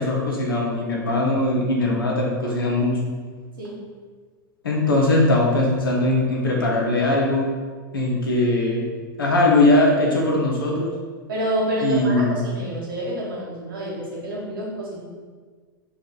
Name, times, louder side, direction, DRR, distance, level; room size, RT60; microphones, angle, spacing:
voice 1, 0.0-2.9 4.6-7.5 7.9-8.9 9.2-10.9 11.8-12.4, left 2 dB, 80° left, -2 dB, 1.0 m, -20 dB
voice 2, 11.3-15.0, right 1 dB, 75° right, -5 dB, 1.3 m, -28 dB
4.0 x 2.5 x 3.8 m, 1.5 s
hypercardioid pair, 100°, 12 cm